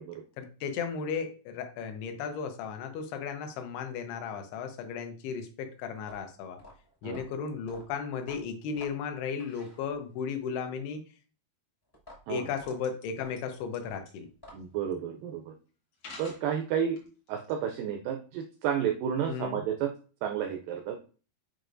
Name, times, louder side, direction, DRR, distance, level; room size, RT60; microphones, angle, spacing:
voice 1, 0.4-6.6 7.0-11.0 12.3-14.3 19.3-19.6, left 6 dB, 85° left, 7 dB, 2.9 m, -35 dB
sound 1, 6.0-10.3 11.9-14.9, left 1 dB, 15° left, 0.7 m, -52 dB
sound 2, 12.5-13.1 13.4-13.8 14.1-14.2 14.9-15.0 15.9-16.4 17.0-17.5, left 3 dB, 55° left, 1.7 m, -47 dB
voice 2, 14.5-15.5 16.2-17.0 17.3-19.9 20.2-21.0, right 8 dB, 85° right, 4 dB, 1.9 m, -31 dB
7.9 x 4.8 x 2.6 m, 0.38 s
omnidirectional pair, 4.6 m